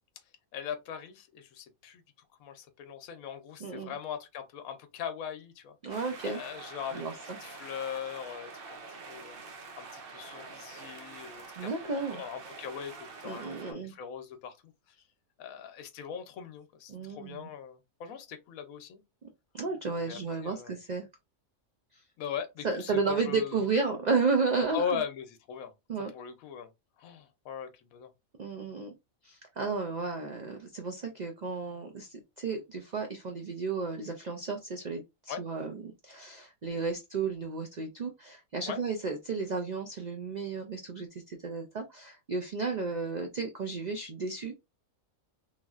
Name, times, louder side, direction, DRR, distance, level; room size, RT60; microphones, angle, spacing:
voice 1, 0.5-2.0 2.4-7.0 7.4-8.8 9.1-9.4 9.8-14.6 14.9-15.0 15.4-19.0 20.0-20.7 22.2-23.7 24.7-25.7 26.1-26.7 27.0-28.1 35.3-35.4 38.7-38.8, left 7 dB, 85° left, 1.1 m, -40 dB
voice 2, 3.6-3.9 5.8-6.4 6.9-7.4 11.6-12.2 13.2-13.9 16.9-17.5 19.5-21.1 21.9-22.0 22.6-25.0 25.9-26.1 28.4-28.9 29.2-44.5, right 4 dB, 90° right, 0.3 m, -33 dB
sound 1, 5.9-13.7, right 4 dB, 50° right, 0.8 m, -46 dB
3.2 x 2.6 x 2.3 m
omnidirectional pair, 1.4 m